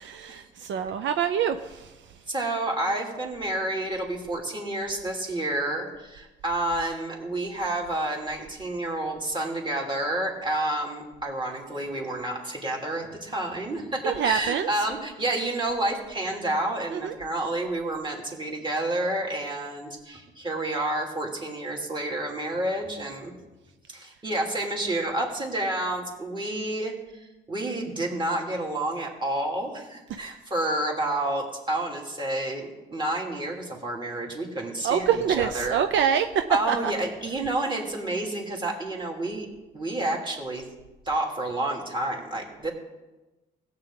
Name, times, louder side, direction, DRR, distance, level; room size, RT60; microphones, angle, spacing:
voice 1, 0.0-1.9 14.0-14.7 16.9-17.1 34.8-36.3 36.7-36.9, right 8 dB, 70° right, 9 dB, 0.6 m, -25 dB
voice 2, 2.3-23.3 23.9-35.8 36.5-39.5 39.7-40.6 41.1-42.7, right 1 dB, 25° right, -1 dB, 2.8 m, -29 dB
16.5 x 8.3 x 3.8 m, 1.1 s
cardioid pair, 90°, 20 cm